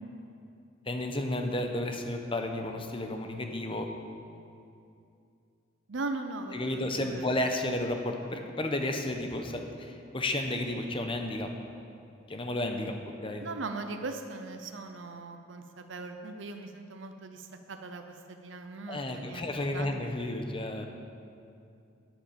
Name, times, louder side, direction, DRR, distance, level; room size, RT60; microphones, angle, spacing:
voice 1, 0.9-3.9 4.1-4.3 6.5-11.5 12.3-12.9 13.2-13.4 18.9-20.9, left 1 dB, 25° left, 4 dB, 0.9 m, -32 dB
voice 2, 5.9-7.3 13.4-19.9, right 3 dB, 80° right, 6 dB, 0.7 m, -39 dB
9.0 x 8.4 x 7.0 m, 2.5 s
head